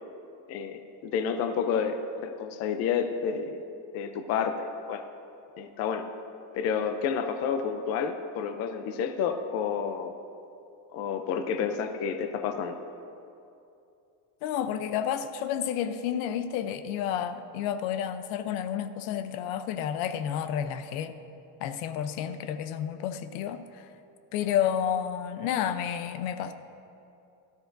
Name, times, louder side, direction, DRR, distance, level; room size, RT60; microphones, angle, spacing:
voice 1, 0.5-3.6 3.9-5.0 5.6-6.0 6.5-10.1 10.9-12.8, left 7 dB, 35° left, 7 dB, 0.6 m, -30 dB
voice 2, 14.4-21.2 21.6-23.9 24.3-26.5, left 9 dB, 85° left, 10 dB, 0.8 m, -30 dB
17.5 x 13.0 x 2.6 m, 2.6 s
cardioid pair, 175°, 41 cm